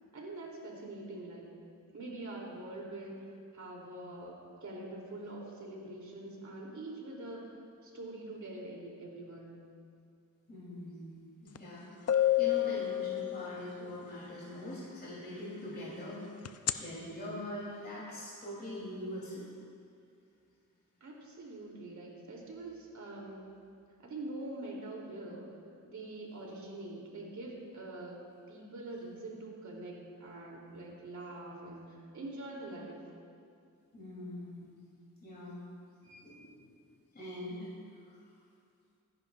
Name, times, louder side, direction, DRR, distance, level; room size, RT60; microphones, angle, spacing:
voice 1, 0.1-1.5 1.9-9.6 21.0-23.5 24.0-25.5 25.8-33.0, right 2 dB, 60° right, -2 dB, 2.9 m, -44 dB
voice 2, 10.5-19.5 33.9-34.7 35.2-35.6 36.0-36.6 37.1-37.7 38.1-38.2, left 1 dB, 30° left, -7 dB, 3.0 m, -43 dB
sound 1, 11.6-11.7 12.1-13.8 16.5-16.7, left 12 dB, 50° left, 0.4 m, -28 dB
26.0 x 11.0 x 2.4 m, 2.4 s
wide cardioid pair, 145°, 33 cm